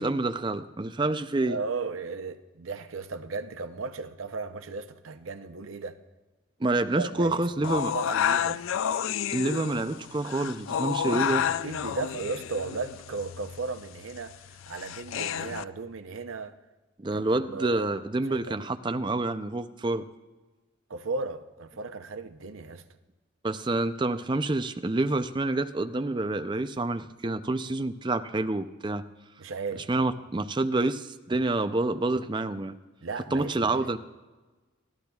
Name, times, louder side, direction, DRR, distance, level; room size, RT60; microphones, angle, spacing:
voice 1, 0.0-1.6 6.6-7.9 9.3-11.4 17.0-20.0 23.4-29.0 29.9-32.7 33.3-34.0, right 2 dB, 25° right, 0.5 m, -28 dB
voice 2, 1.4-6.0 7.0-8.6 11.0-11.3 11.6-16.6 17.1-17.2 17.5-18.0 18.3-18.6 20.9-22.8 29.4-30.1 33.0-34.0, right 4 dB, 80° right, 0.7 m, -36 dB
sound 1, 7.6-15.6, left 8 dB, 75° left, 0.4 m, -30 dB
25.0 x 15.0 x 2.4 m
head